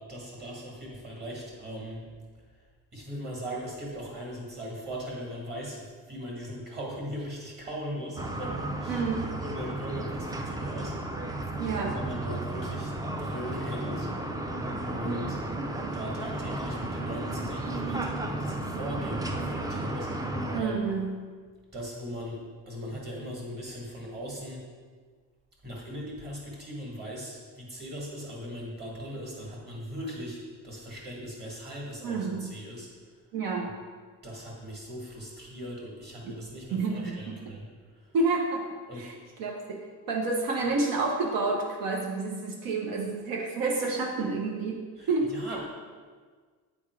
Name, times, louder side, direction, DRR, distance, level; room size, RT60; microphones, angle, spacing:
voice 1, 0.0-2.0 2.9-5.8 6.1-9.0 9.4-11.0 11.4-12.9 13.2-14.5 14.8-15.4 15.9-20.7 21.7-24.6 25.6-30.4 30.6-32.9 34.2-37.7 38.0-38.1 38.9-39.0 45.0-45.6, equal, 30° right, -3 dB, 2.1 m, -39 dB
sound 1, 8.2-20.6, right 2 dB, 10° right, 0.3 m, -33 dB
voice 2, 8.9-9.3 11.6-12.1 15.0-15.3 15.6-15.8 20.5-21.2 32.0-32.6 33.3-33.7 36.2-36.3 36.7-37.5 38.1-38.7 38.9-39.1 39.4-45.4, right 3 dB, 80° right, 0 dB, 1.0 m, -30 dB
9.0 x 3.6 x 4.8 m, 1.5 s
cardioid pair, 145°, 34 cm